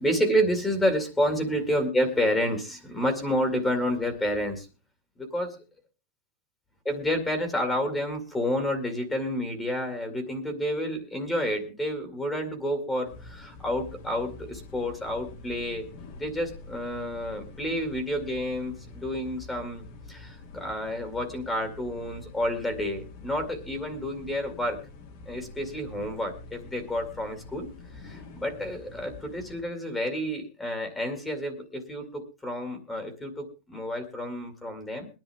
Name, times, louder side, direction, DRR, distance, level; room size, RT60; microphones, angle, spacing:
voice 1, 0.0-4.7 5.2-5.6 6.8-15.9 16.2-24.8 25.3-35.1, equal, 10° left, 7 dB, 2.2 m, -29 dB
sound 1, 13.0-29.6, left 3 dB, 50° left, 2.8 m, -46 dB
21.0 x 10.5 x 3.5 m, 0.31 s
supercardioid pair, 160°, 0 cm